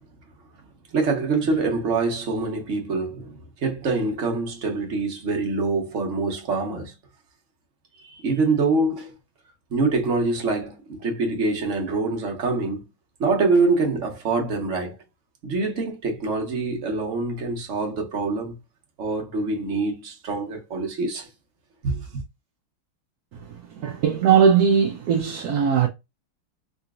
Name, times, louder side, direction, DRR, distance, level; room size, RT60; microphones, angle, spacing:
voice 1, 0.9-3.4 3.6-6.9 8.2-9.1 9.7-12.8 13.2-14.9 15.4-18.6 19.0-21.3 21.8-22.0, right 3 dB, 45° right, 1.1 m, -25 dB
voice 2, 23.8-25.9, right 7 dB, 70° right, 0.9 m, -19 dB
3.8 x 2.8 x 2.4 m
omnidirectional pair, 2.3 m